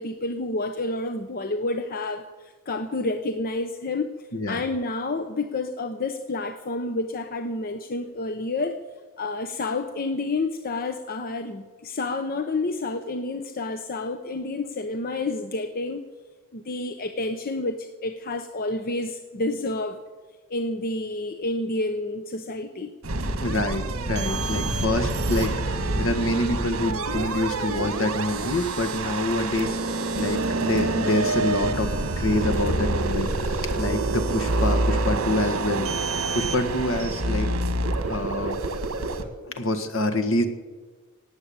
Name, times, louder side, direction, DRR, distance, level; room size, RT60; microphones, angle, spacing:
voice 1, 0.0-8.8 9.2-16.0 16.5-20.0 20.5-22.9, left 2 dB, 45° left, 8 dB, 0.8 m, -29 dB
sound 1, 23.0-39.2, right 2 dB, 70° right, 1.5 m, -27 dB
voice 2, 23.4-29.7 30.2-31.9 32.2-35.9 36.3-37.5 38.1-38.6 39.4-40.5, left 1 dB, 65° left, 7 dB, 1.7 m, -26 dB
18.0 x 8.1 x 8.7 m, 1.4 s
head